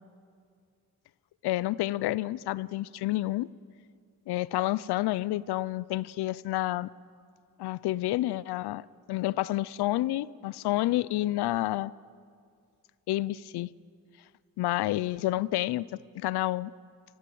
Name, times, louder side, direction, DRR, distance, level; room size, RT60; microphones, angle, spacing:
voice 1, 1.4-3.5 4.3-6.9 7.6-11.9 13.1-13.7 14.6-15.9 16.1-16.7, left 16 dB, 80° left, 20 dB, 0.5 m, -29 dB
19.5 x 18.5 x 7.8 m, 2.2 s
cardioid pair, 85°, 38 cm